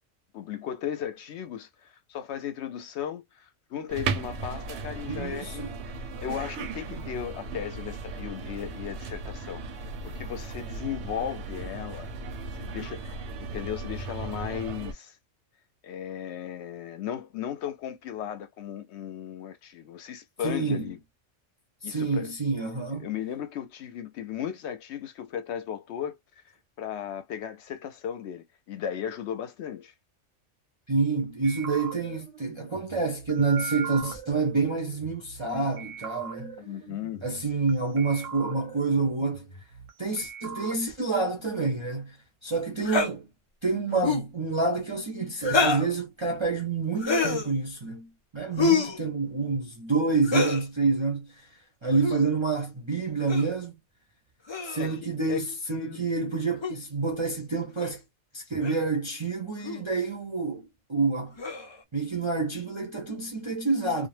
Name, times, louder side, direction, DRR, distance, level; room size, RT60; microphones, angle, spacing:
voice 1, 0.3-12.1 12.5-15.2 15.8-21.0 21.8-22.3 23.0-26.2 26.8-29.9 36.6-37.2 54.8-55.0 55.3-55.4 55.7-56.1, left 9 dB, 70° left, 0.8 m, -36 dB
sound 1, 3.9-14.9, right 3 dB, 70° right, 0.8 m, -36 dB
voice 2, 5.1-5.7 20.4-20.9 21.8-23.1 30.9-36.6 37.2-39.5 40.0-42.2 42.4-43.3 43.6-51.3 51.8-53.7 54.6-58.0 58.3-61.3 61.9-64.1, right 4 dB, 35° right, 0.5 m, -28 dB
sound 2, 31.4-35.4 35.8-37.7 38.0-39.9 40.2-40.8, right 7 dB, 90° right, 1.1 m, -40 dB
sound 3, 42.8-43.1 43.9-44.3 45.4-45.9 47.0-47.5 48.6-49.0 50.2-50.6 51.9-52.2 53.3-53.5 54.5-54.9 56.6-56.7 57.8-57.9 58.6-58.8 59.6-59.8 61.4-61.8, left 4 dB, 50° left, 0.3 m, -26 dB
2.3 x 2.1 x 3.1 m
omnidirectional pair, 1.3 m